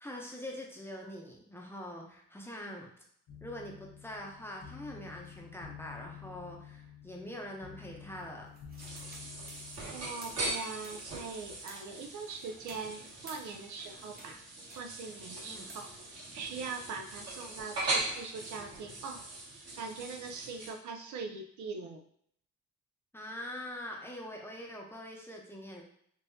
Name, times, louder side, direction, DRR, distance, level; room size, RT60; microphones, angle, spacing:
voice 1, 0.0-2.9 3.4-8.5 15.4-15.7 23.1-25.8, left 1 dB, 10° left, -1 dB, 0.7 m, -44 dB
sound 1, 3.3-10.1, left 8 dB, 75° left, 0.8 m, -50 dB
sound 2, 8.2-14.3 14.7-16.5, right 1 dB, 30° right, 1.0 m, -55 dB
sound 3, 8.8-20.7, right 2 dB, 55° right, 1.5 m, -40 dB
voice 2, 9.9-14.4 14.8-19.2 19.8-22.0, right 4 dB, 70° right, 4 dB, 0.5 m, -42 dB
3.7 x 2.7 x 2.7 m, 0.68 s
cardioid pair, 90°, 30 cm